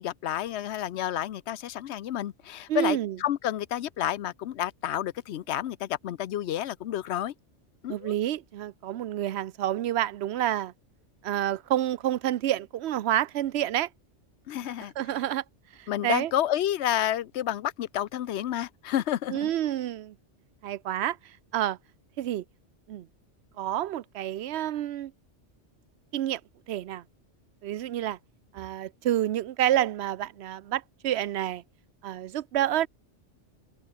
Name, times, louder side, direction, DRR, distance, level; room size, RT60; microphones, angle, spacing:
voice 1, 0.0-7.3 7.8-8.1 14.5-14.9 15.9-19.5, left 11 dB, 70° left, 0.9 m, -30 dB
voice 2, 2.7-3.2 7.9-10.7 11.2-13.9 15.0-15.4 15.8-16.3 19.3-20.1 20.6-21.2 21.5-21.8 22.2-22.4 22.9-23.1 23.6-25.1 26.1-26.4 26.7-27.0 27.6-28.2 28.5-31.6 32.0-32.9, right 12 dB, 65° right, 0.9 m, -28 dB
open air
omnidirectional pair, 1.2 m